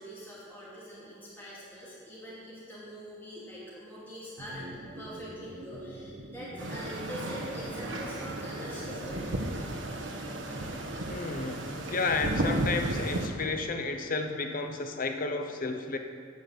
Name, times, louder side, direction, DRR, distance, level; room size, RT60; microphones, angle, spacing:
voice 1, 0.0-9.4, equal, 10° left, -9 dB, 2.5 m, -44 dB
acid ambient, 4.4-9.7, right 1 dB, 55° right, 1.1 m, -45 dB
sound 1, 6.6-13.3, right 1 dB, 80° right, 1.3 m, -34 dB
voice 2, 11.1-11.6 11.9-16.0, left 3 dB, 45° left, 6 dB, 0.8 m, -32 dB
9.2 x 7.9 x 7.1 m, 2.2 s
head